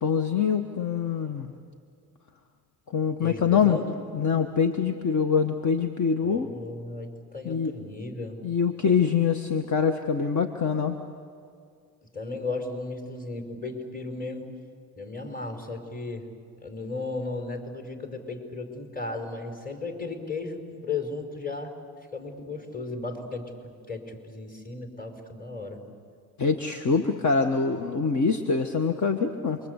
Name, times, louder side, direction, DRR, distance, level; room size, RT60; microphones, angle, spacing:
voice 1, 0.0-1.5 2.9-3.8 4.1-6.5 7.4-7.8 8.4-11.0 26.4-29.6, left 6 dB, 45° left, 6 dB, 1.6 m, -24 dB
voice 2, 3.2-3.9 6.2-8.4 12.0-14.5 15.0-16.3 16.6-21.7 22.1-25.8, left 3 dB, 20° left, 5 dB, 5.4 m, -35 dB
28.0 x 23.5 x 8.3 m, 2.2 s
supercardioid pair, 70°, 39 cm